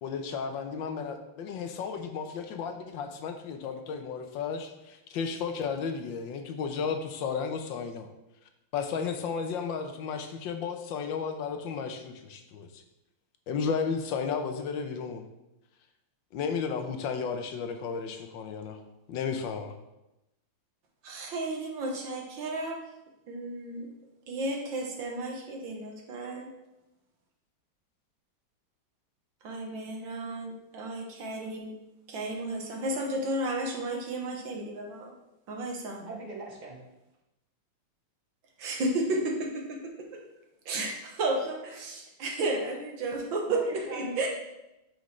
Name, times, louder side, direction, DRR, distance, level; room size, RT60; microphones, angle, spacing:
voice 1, 0.0-8.1 8.7-12.8 13.5-15.2 16.3-18.8 19.1-19.7, left 6 dB, 70° left, 6 dB, 1.3 m, -33 dB
voice 2, 21.0-22.8 23.3-23.9 24.3-26.5 29.4-31.7 32.1-35.1 35.5-36.0 38.6-40.2 40.6-43.6 43.9-44.3, right 2 dB, 65° right, 1 dB, 1.8 m, -33 dB
voice 3, 36.0-36.8 43.5-44.3, right 1 dB, 30° right, -1 dB, 0.9 m, -40 dB
9.3 x 5.1 x 3.1 m, 0.93 s
omnidirectional pair, 2.3 m